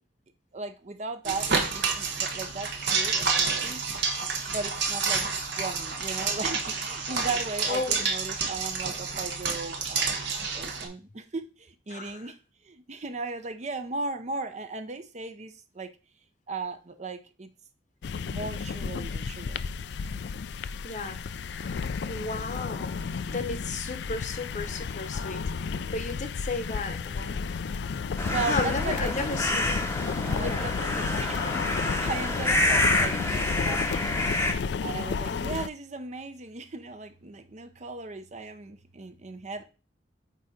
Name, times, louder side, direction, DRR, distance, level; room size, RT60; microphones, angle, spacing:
voice 1, 0.5-3.8 4.5-10.2 10.5-12.4 12.6-15.9 16.5-17.5 18.2-19.7 28.3-29.4 30.1-39.6, right 3 dB, 40° right, 0.7 m, -37 dB
sound 1, 1.2-10.9, right 5 dB, 65° right, 1.3 m, -29 dB
voice 2, 7.7-8.0 11.9-12.3 20.8-27.4 28.2-29.8 30.4-30.8 35.3-35.6, left 3 dB, 40° left, 0.9 m, -34 dB
sound 2, 18.0-35.7, left 5 dB, 65° left, 0.4 m, -32 dB
sound 3, 28.2-34.5, left 1 dB, 15° left, 0.8 m, -28 dB
8.5 x 2.9 x 4.9 m
head